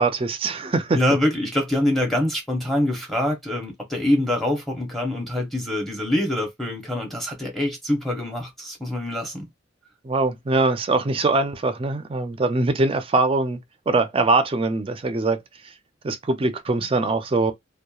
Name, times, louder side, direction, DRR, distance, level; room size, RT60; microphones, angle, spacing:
voice 1, 0.0-1.0 10.0-13.6 13.9-15.4 16.0-17.5, right 3 dB, 30° right, 0.4 m, -22 dB
voice 2, 0.9-9.4, left 1 dB, ahead, 0.7 m, -24 dB
2.8 x 2.2 x 2.3 m
head